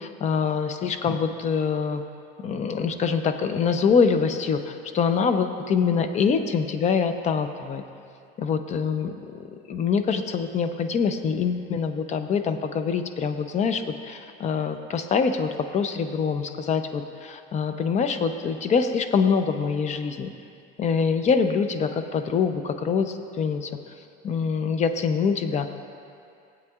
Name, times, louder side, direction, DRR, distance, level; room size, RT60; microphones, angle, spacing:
voice 1, 0.0-2.0 2.4-7.8 8.4-20.3 20.8-23.7 24.2-25.7, left 6 dB, 35° left, 8 dB, 0.6 m, -25 dB
18.5 x 8.2 x 2.4 m, 2.4 s
cardioid pair, 125°, 21 cm